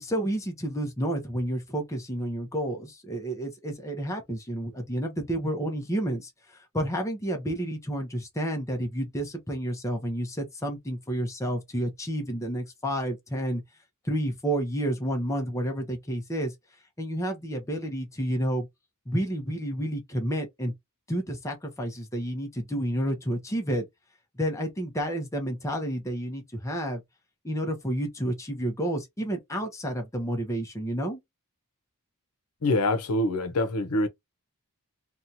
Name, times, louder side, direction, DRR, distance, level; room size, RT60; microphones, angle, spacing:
voice 1, 0.0-6.3 6.7-13.6 14.0-16.5 17.0-18.7 19.1-20.7 21.1-23.9 24.4-27.0 27.4-31.2, right 1 dB, 15° left, 0.7 m, -30 dB
voice 2, 32.6-34.1, left 2 dB, 85° left, 0.7 m, -25 dB
2.8 x 2.4 x 2.6 m
head